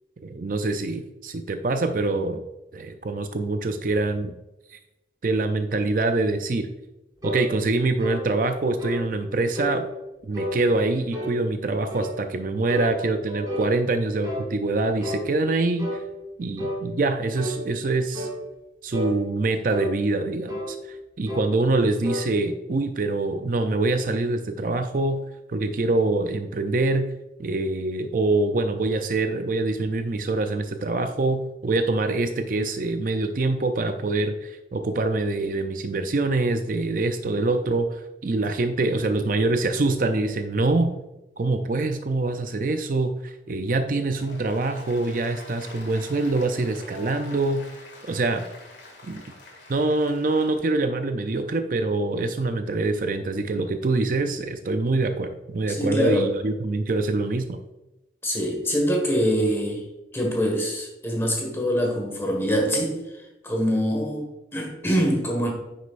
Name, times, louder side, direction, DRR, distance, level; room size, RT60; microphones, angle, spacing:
voice 1, 0.2-2.4 2.7-4.3 4.7-4.8 5.2-6.7 7.2-9.9 10.3-16.0 16.4-18.3 18.8-25.2 25.5-27.1 27.4-40.9 41.4-47.6 48.1-48.4 49.0-49.2 49.7-57.6, right 2 dB, 50° right, 7 dB, 0.5 m, -25 dB
sound 1, 7.2-7.5 8.0-8.3 8.8-9.0 9.6-9.8 10.3-10.6 11.1-11.4 11.9-12.2 12.7-13.7 14.2-14.5 15.0-15.3 15.8-16.0 16.6-16.8 17.4-17.6 18.1-18.4 18.9-19.2 19.7-19.9 20.5-20.7 21.3-21.5 22.0-22.3, equal, 20° right, 2.6 m, -31 dB
Applause, 44.0-50.8, left 2 dB, 85° left, 2.2 m, -46 dB
voice 2, 55.7-56.3 58.2-59.8 60.1-65.5, equal, 15° left, 1 dB, 1.6 m, -24 dB
9.8 x 6.3 x 2.5 m, 0.98 s
head